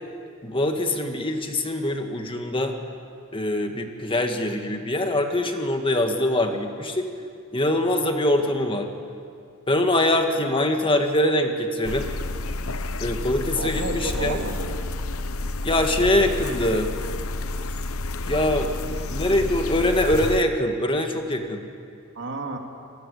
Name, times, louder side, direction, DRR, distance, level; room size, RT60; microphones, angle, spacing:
voice 1, 0.4-2.7 3.3-7.1 7.5-8.9 9.7-12.1 13.0-14.4 15.6-16.9 18.3-18.7 19.1-21.6, left 1 dB, 25° left, 4 dB, 1.8 m, -23 dB
sound 1, 11.8-20.4, left 2 dB, 80° left, 0.9 m, -30 dB
voice 2, 13.5-14.9 22.1-22.6, right 2 dB, 60° right, 2 dB, 2.9 m, -31 dB
28.0 x 19.5 x 8.4 m, 2.3 s
head